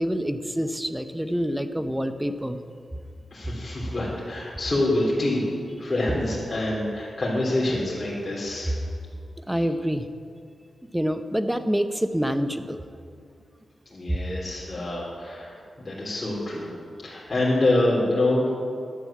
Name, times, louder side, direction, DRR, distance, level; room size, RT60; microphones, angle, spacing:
voice 1, 0.0-2.6 9.5-10.1 10.9-12.9 14.1-14.2, equal, 5° right, 9 dB, 0.8 m, -26 dB
voice 2, 3.3-5.4 5.8-8.7 13.9-15.6 15.8-16.7 17.0-18.5, left 1 dB, 35° left, -6 dB, 3.6 m, -26 dB
11.5 x 9.0 x 8.7 m, 2.4 s
cardioid pair, 70°, 0 cm